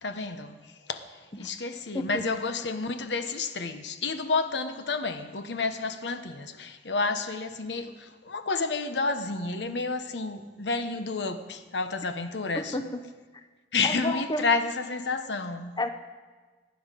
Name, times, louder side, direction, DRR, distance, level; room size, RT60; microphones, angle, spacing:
voice 1, 0.0-1.1 1.4-12.8 13.7-15.7, left 4 dB, 80° left, 1.0 m, -30 dB
voice 2, 1.9-2.3 12.5-13.0 13.3-13.5 13.8-14.5 15.8-15.9, left 2 dB, 25° left, 0.7 m, -31 dB
22.5 x 10.5 x 5.2 m
head